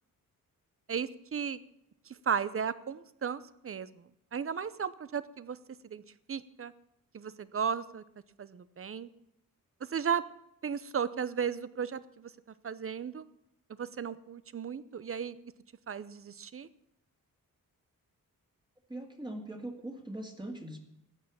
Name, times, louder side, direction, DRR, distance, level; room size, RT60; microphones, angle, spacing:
voice 1, 0.9-1.6 2.0-5.6 5.8-6.0 6.3-6.7 7.1-8.0 8.4-9.1 9.8-10.2 10.6-12.3 12.6-13.3 13.7-15.4 15.9-16.7, right 7 dB, 40° right, 16 dB, 0.8 m, -35 dB
voice 2, 18.9-20.8, right 1 dB, 15° right, 2 dB, 2.2 m, -41 dB
13.5 x 8.8 x 8.5 m, 0.82 s
wide cardioid pair, 120°, 35 cm